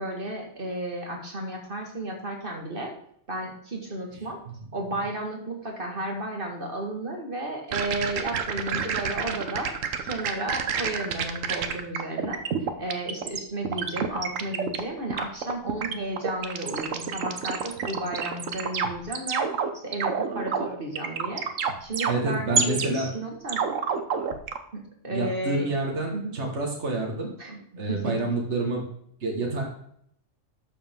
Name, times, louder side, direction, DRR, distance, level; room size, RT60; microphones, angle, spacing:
voice 1, 0.0-2.9 3.3-4.4 4.7-9.7 10.0-12.4 12.8-19.5 19.7-23.6 24.7-25.7 26.1-26.4 27.4-27.6 27.9-28.2, right 1 dB, 45° right, 1 dB, 2.0 m, -33 dB
sound 1, 7.7-13.4 13.6-14.8 15.1-22.9 23.5-24.6, right 6 dB, 90° right, 1.3 m, -28 dB
voice 2, 22.1-23.1 25.1-27.3 27.8-28.8 29.2-29.7, right 2 dB, 65° right, 0 dB, 2.0 m, -28 dB
11.5 x 7.0 x 3.6 m, 0.67 s
omnidirectional pair, 1.3 m